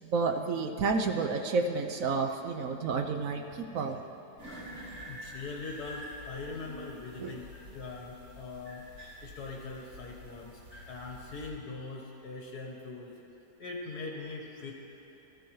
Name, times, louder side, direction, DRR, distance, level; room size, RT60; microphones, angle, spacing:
voice 1, 0.0-4.0 7.2-7.4, right 4 dB, 65° right, 4 dB, 0.9 m, -30 dB
sound 1, 4.4-11.5, equal, 50° right, 3.1 m, -47 dB
voice 2, 5.1-8.8 9.2-10.6 10.9-13.1 13.6-14.7, left 3 dB, 65° left, -1 dB, 1.7 m, -41 dB
18.5 x 13.5 x 3.1 m, 2.9 s
omnidirectional pair, 1.8 m